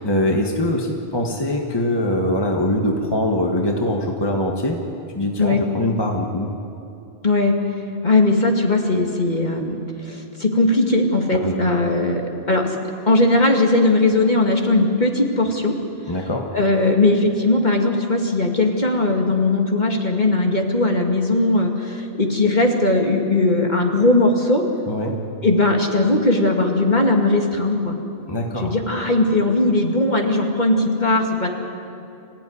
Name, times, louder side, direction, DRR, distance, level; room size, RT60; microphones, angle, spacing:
voice 1, 0.0-4.8 5.1-6.5 11.4-11.6 16.1-16.5 24.9-25.1 28.3-28.7, left 1 dB, 25° left, 1 dB, 1.6 m, -22 dB
voice 2, 7.2-7.6 8.0-12.8 13.1-15.8 16.5-24.6 25.4-27.9 28.6-31.5, left 2 dB, 45° left, 1 dB, 2.4 m, -19 dB
26.5 x 15.5 x 9.7 m, 2.7 s
omnidirectional pair, 1.1 m